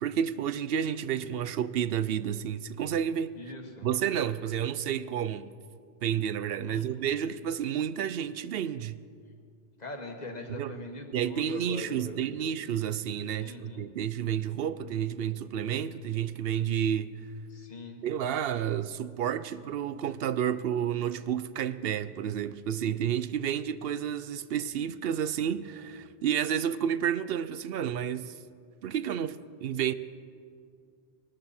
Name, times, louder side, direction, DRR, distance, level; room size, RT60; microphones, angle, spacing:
voice 1, 0.0-3.3 3.8-5.5 6.0-9.0 10.6-10.7 11.1-17.2 18.0-28.3 28.8-29.9, right 9 dB, 70° right, 0.8 m, -30 dB
voice 2, 3.3-3.9 6.6-6.9 9.8-12.3 13.4-13.8 17.5-18.1, left 2 dB, 45° left, 1.7 m, -42 dB
22.5 x 13.0 x 4.3 m
omnidirectional pair, 1.0 m